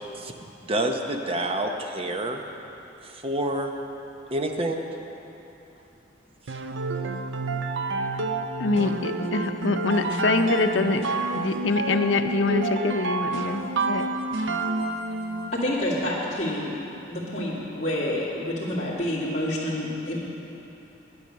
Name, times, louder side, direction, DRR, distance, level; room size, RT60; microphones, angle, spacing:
voice 1, 0.6-2.4 3.2-3.7 4.3-4.8, right 1 dB, 30° right, 4 dB, 0.8 m, -27 dB
sound 1, 6.5-15.7, right 3 dB, 85° right, 0.7 m, -29 dB
voice 2, 8.6-11.0 11.3-13.6 13.9-14.1, left 3 dB, 80° left, 7 dB, 0.7 m, -24 dB
voice 3, 15.5-16.7 17.1-20.2, left 1 dB, 40° left, -9 dB, 2.1 m, -28 dB
10.5 x 9.7 x 6.6 m, 3.0 s
head